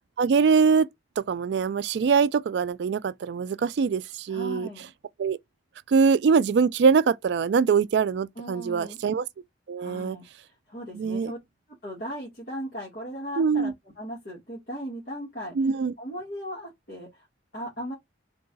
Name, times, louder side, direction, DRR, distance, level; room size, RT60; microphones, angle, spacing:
voice 1, 0.2-0.9 1.2-4.7 5.2-5.4 5.9-9.2 9.7-10.2 10.9-11.3 13.4-13.7 15.6-15.9, right 5 dB, 70° right, 0.3 m, -23 dB
voice 2, 4.3-4.9 8.4-9.0 9.8-10.2 10.7-11.4 11.8-15.5 16.0-17.3 17.5-17.9, equal, 50° left, 1.7 m, -37 dB
3.7 x 2.3 x 3.9 m
head